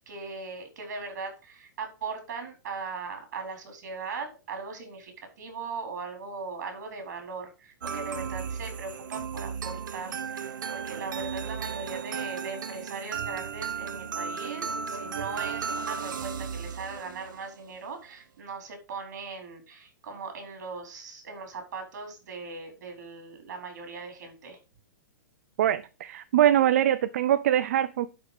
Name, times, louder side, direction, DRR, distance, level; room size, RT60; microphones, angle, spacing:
voice 1, 0.0-24.6, right 4 dB, 60° right, 5 dB, 4.2 m, -39 dB
sound 1, 7.8-17.5, right 6 dB, 85° right, 1.0 m, -35 dB
voice 2, 25.6-28.1, right 11 dB, 45° right, 12 dB, 0.5 m, -23 dB
11.5 x 5.1 x 5.1 m, 0.32 s
hypercardioid pair, 170°, 10 cm